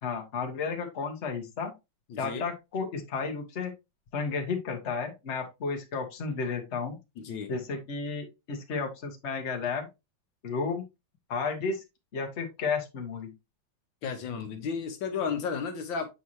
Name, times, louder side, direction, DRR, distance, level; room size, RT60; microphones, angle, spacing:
voice 1, 0.0-1.7 2.2-3.7 4.1-7.0 7.5-9.8 10.4-10.8 11.3-11.8 12.1-13.3, left 5 dB, 40° left, 1.3 m, -32 dB
voice 2, 2.1-2.4 7.2-7.5 14.0-16.1, left 6 dB, 75° left, 1.6 m, -33 dB
7.5 x 4.6 x 2.7 m
omnidirectional pair, 2.1 m